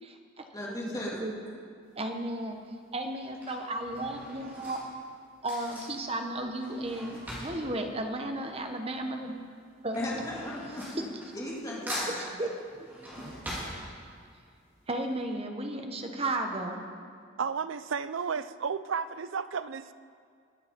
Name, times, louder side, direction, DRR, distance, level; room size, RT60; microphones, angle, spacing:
voice 1, 0.0-1.3 2.0-2.6 2.9-4.8 5.4-9.4 9.8-10.0 11.0-11.1 12.1-12.5 13.2-13.3 14.9-16.8, right 1 dB, 30° right, 4 dB, 1.1 m, -34 dB
voice 2, 0.5-1.2 9.9-11.0 11.3-12.3, left 1 dB, 20° left, -5 dB, 2.4 m, -36 dB
Drawer open or close / Cutlery silverware, 1.9-2.2 3.1-9.0 9.2-11.6 11.9-14.4 14.8-14.9 15.1-15.2, equal, 10° right, 3.6 m, -42 dB
voice 3, 17.4-19.9, right 6 dB, 75° right, 14 dB, 0.5 m, -33 dB
21.0 x 8.9 x 5.2 m, 2.2 s
head